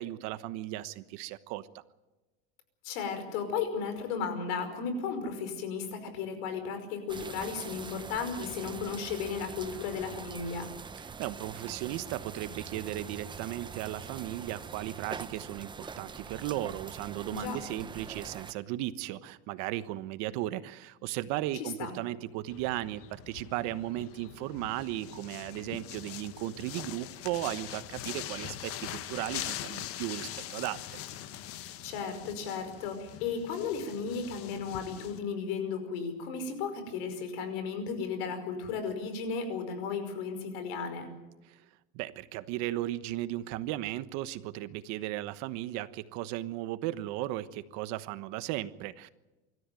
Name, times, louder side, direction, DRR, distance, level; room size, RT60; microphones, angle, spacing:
voice 1, 0.0-1.8 11.0-31.0 41.5-41.6 41.9-49.1, right 15 dB, 60° right, 13 dB, 1.2 m, -36 dB
voice 2, 2.8-10.7 17.3-17.6 21.5-21.9 31.8-41.1, left 5 dB, 75° left, 8 dB, 5.4 m, -35 dB
sound 1, 7.1-18.5, right 5 dB, 15° right, 0.9 m, -44 dB
sound 2, 22.5-35.2, left 11 dB, 45° left, 1.4 m, -42 dB
25.0 x 14.0 x 9.2 m, 1.1 s
supercardioid pair, 135°, 31 cm